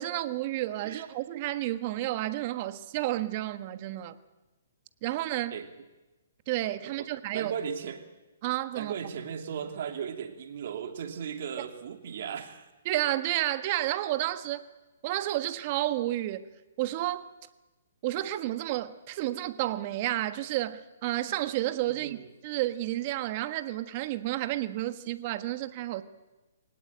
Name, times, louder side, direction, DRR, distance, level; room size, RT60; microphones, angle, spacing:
voice 1, 0.0-4.1 5.0-5.5 6.5-7.5 8.4-8.9 12.8-14.6 15.0-16.5 16.8-17.3 18.0-26.0, right 15 dB, 40° right, 11 dB, 1.4 m, -31 dB
voice 2, 7.3-8.0 8.7-12.7 21.9-22.3, right 7 dB, 55° right, 5 dB, 3.0 m, -36 dB
23.0 x 18.0 x 8.9 m, 1.1 s
hypercardioid pair, 140°, 0 cm